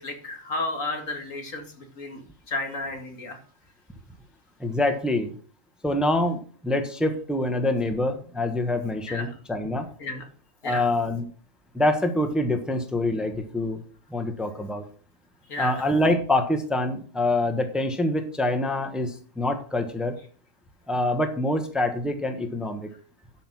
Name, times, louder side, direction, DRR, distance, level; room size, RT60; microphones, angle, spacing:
voice 1, 0.0-3.4 9.1-9.3 10.0-10.3 10.6-10.9 15.5-15.9, left 2 dB, 75° left, 4 dB, 2.5 m, -33 dB
voice 2, 4.6-5.3 5.8-9.9 10.6-11.2 11.7-13.8 14.1-14.8 15.6-20.2 20.9-22.9, left 1 dB, ahead, 7 dB, 1.2 m, -25 dB
12.0 x 5.7 x 6.1 m, 0.43 s
omnidirectional pair, 1.4 m